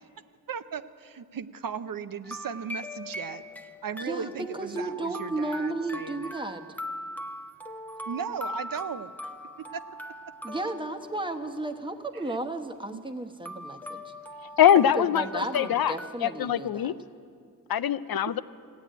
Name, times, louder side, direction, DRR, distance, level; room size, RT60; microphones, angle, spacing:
voice 1, 0.5-3.4 3.8-6.3 8.1-9.1 9.7-9.8 12.9-13.0 18.3-18.4, right 7 dB, 70° right, 11 dB, 0.6 m, -36 dB
sound 1, 2.2-11.6 13.4-16.1, equal, 5° left, 0.8 m, -41 dB
voice 2, 4.0-6.7 10.4-14.1 14.9-16.9, right 2 dB, 15° right, 6 dB, 1.1 m, -34 dB
voice 3, 14.6-15.9 16.2-16.9 17.7-18.4, left 10 dB, 85° left, 13 dB, 0.5 m, -22 dB
15.5 x 9.0 x 9.1 m, 2.2 s
cardioid pair, 60°, 35 cm